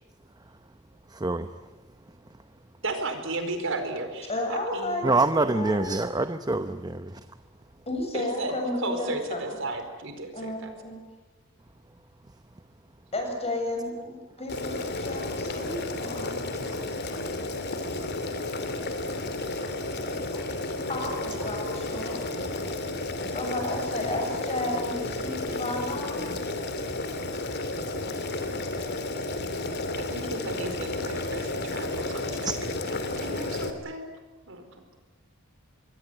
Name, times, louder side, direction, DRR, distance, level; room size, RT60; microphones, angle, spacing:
voice 1, 1.1-1.6 5.0-7.2 16.7-16.8 20.3-20.4 32.4-32.6, right 2 dB, 20° right, 0.8 m, -26 dB
voice 2, 2.8-5.0 8.1-8.5 8.8-10.7 30.1-34.1 34.5-34.6, right 2 dB, 70° right, 4.7 m, -34 dB
voice 3, 4.3-5.9 7.9-9.4 10.3-11.0 13.1-16.4 20.9-22.3 23.3-26.5, left 1 dB, 30° left, 7.4 m, -32 dB
Boiling, 14.5-33.7, left 2 dB, 55° left, 2.9 m, -32 dB
25.5 x 22.5 x 9.5 m
head